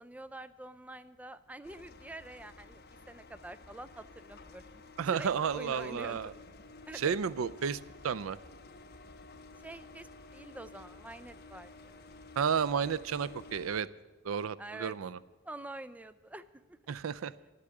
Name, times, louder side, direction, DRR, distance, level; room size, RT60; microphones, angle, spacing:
voice 1, 0.0-2.8 3.1-6.4 6.9-7.2 9.6-12.0 14.6-15.0 15.4-16.4 16.7-16.9, right 2 dB, 5° right, 13 dB, 0.4 m, -46 dB
sound 1, 1.6-13.8, left 3 dB, 50° left, 0.9 m, -53 dB
voice 2, 5.0-6.3 6.9-8.4 12.4-13.9 14.2-15.2 16.9-17.3, right 7 dB, 80° right, 17 dB, 0.4 m, -32 dB
12.0 x 8.5 x 8.9 m, 1.2 s
head